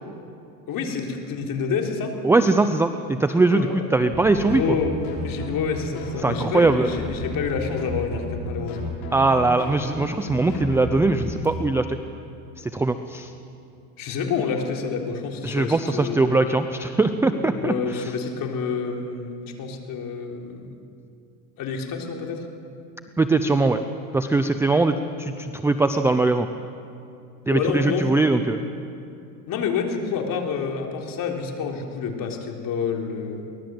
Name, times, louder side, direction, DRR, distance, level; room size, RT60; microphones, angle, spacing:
voice 1, 0.7-2.1 3.5-3.9 4.5-8.9 14.0-16.5 17.3-20.7 21.6-22.5 27.5-28.1 29.5-33.4, left 5 dB, 40° left, 2 dB, 3.8 m, -28 dB
voice 2, 2.2-4.8 6.2-6.9 9.1-12.0 12.6-13.3 15.4-17.7 23.2-23.8 24.1-26.5 27.5-28.6, right 3 dB, 5° right, 9 dB, 0.4 m, -21 dB
sound 1, 4.1-11.5, left 1 dB, 60° left, 6.7 m, -33 dB
23.5 x 18.5 x 7.8 m, 2.6 s
supercardioid pair, 120°, 49 cm